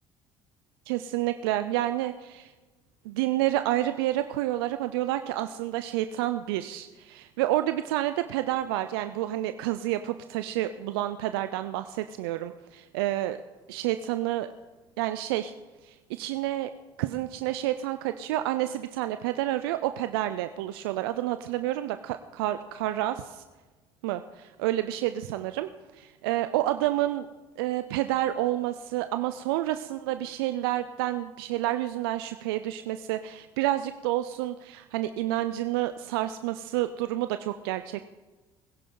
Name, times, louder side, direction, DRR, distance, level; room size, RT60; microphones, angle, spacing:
voice 1, 0.9-2.5 3.0-13.4 13.7-14.5 15.0-15.5 15.8-16.7 17.0-23.4 24.0-27.3 27.6-38.0, right 14 dB, 85° right, 10 dB, 0.4 m, -29 dB
21.5 x 10.5 x 3.8 m, 1.2 s
hypercardioid pair, 65°, 12 cm